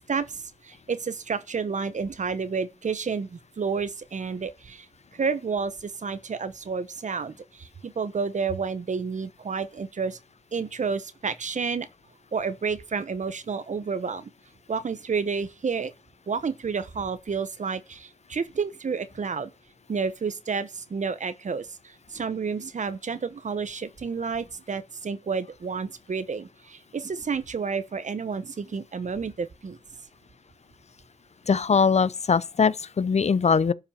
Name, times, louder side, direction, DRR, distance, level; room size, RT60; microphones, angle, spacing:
voice 1, 0.1-4.9 5.1-10.2 10.5-11.9 12.3-14.3 14.7-15.9 16.3-19.5 19.9-29.8, right 5 dB, 70° right, 1.1 m, -30 dB
voice 2, 31.5-33.7, left 5 dB, 60° left, 0.6 m, -21 dB
12.0 x 5.7 x 7.2 m
wide cardioid pair, 65°, 13 cm